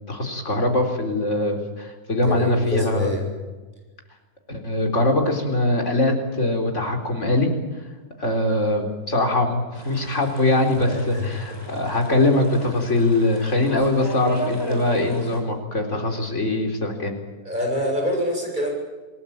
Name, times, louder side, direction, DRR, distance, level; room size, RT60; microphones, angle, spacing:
voice 1, 0.0-3.1 4.5-7.5 8.2-17.1, left 2 dB, 50° left, 4 dB, 4.4 m, -22 dB
voice 2, 2.2-3.3 10.8-11.6 17.4-18.7, left 1 dB, 30° right, 1 dB, 8.3 m, -26 dB
sound 1, 9.7-15.4, left 1 dB, 15° left, 5.1 m, -36 dB
28.0 x 18.5 x 8.9 m, 1.2 s
omnidirectional pair, 1.6 m